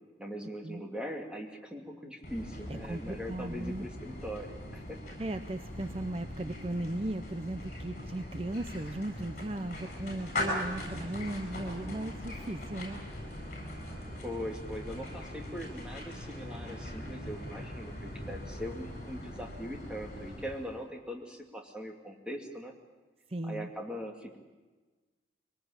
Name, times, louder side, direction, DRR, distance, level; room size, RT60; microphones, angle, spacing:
voice 1, 0.2-5.0 14.2-22.7 23.4-24.4, equal, 5° right, 1 dB, 2.7 m, -41 dB
sound 1, 2.2-20.9, left 1 dB, 40° left, 7.7 m, -41 dB
voice 2, 2.7-3.9 5.2-13.0 23.3-23.7, right 1 dB, 35° right, 9 dB, 0.7 m, -37 dB
24.0 x 19.0 x 8.8 m, 1.3 s
head